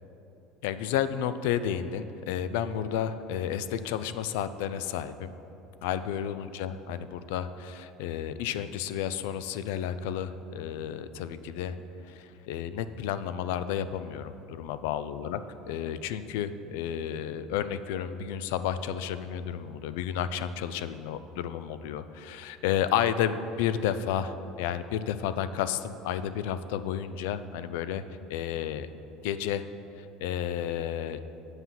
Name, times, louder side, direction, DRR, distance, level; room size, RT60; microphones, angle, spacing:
voice 1, 0.6-5.3 5.8-11.8 12.1-15.4 15.7-28.0 28.3-28.9 29.2-29.6 30.0-31.2, left 9 dB, 80° left, 13 dB, 0.4 m, -31 dB
8.0 x 5.7 x 7.5 m, 2.9 s
cardioid pair, 175°, 0 cm